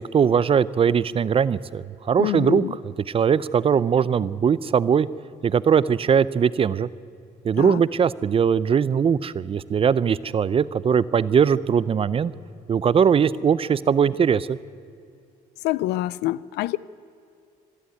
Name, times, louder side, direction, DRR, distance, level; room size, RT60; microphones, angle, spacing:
voice 1, 0.0-2.6 3.1-5.1 5.4-6.9 7.4-12.3 12.7-14.6, right 7 dB, 35° right, 0.6 m, -20 dB
voice 2, 2.2-2.8 7.5-7.8 15.6-16.8, left 16 dB, 85° left, 0.5 m, -26 dB
25.5 x 11.5 x 9.3 m
cardioid pair, 110°, 17 cm